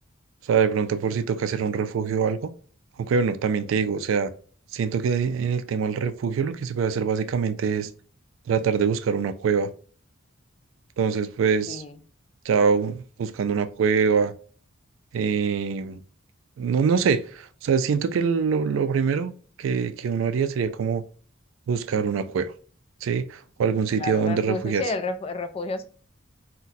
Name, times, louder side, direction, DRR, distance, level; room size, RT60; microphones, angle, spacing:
voice 1, 0.5-2.5 3.0-4.3 4.7-7.9 8.5-9.7 11.0-11.8 12.5-14.3 15.1-16.0 16.6-19.3 19.6-21.0 21.7-22.5 23.0-24.8, right 6 dB, 70° right, 0.3 m, -24 dB
voice 2, 24.0-25.9, left 3 dB, 30° left, 0.3 m, -30 dB
3.9 x 2.2 x 2.6 m
head